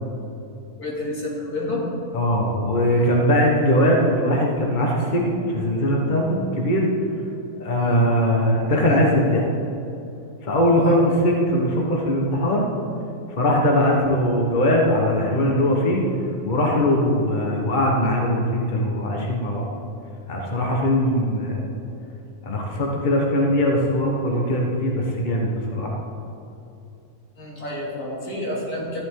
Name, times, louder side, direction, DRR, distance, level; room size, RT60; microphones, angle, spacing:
voice 1, 0.8-1.8 7.8-8.0 10.8-11.0 27.4-29.0, left 1 dB, 80° left, -5 dB, 3.4 m, -29 dB
voice 2, 2.1-6.9 7.6-9.5 10.4-12.7 13.3-16.0 16.4-19.7 20.3-21.6 22.4-25.9, equal, 30° left, -1 dB, 1.5 m, -20 dB
14.5 x 11.0 x 3.9 m, 2.7 s
omnidirectional pair, 1.6 m